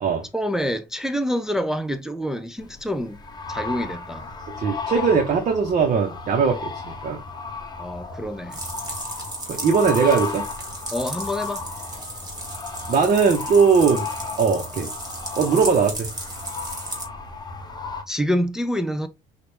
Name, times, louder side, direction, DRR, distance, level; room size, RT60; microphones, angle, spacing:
voice 1, 0.3-3.2 3.5-4.3 7.8-8.6 10.9-11.6 18.1-19.1, equal, 5° right, 0.4 m, -26 dB
sound 1, 2.6-18.0, left 4 dB, 25° left, 0.8 m, -34 dB
voice 2, 4.5-7.2 9.5-10.5 12.9-14.1 14.4-14.9 15.3-16.1, right 5 dB, 45° right, 1.0 m, -20 dB
sound 2, 8.5-17.0, right 1 dB, 25° right, 2.2 m, -35 dB
5.8 x 2.5 x 3.4 m
cardioid pair, 110°, 17 cm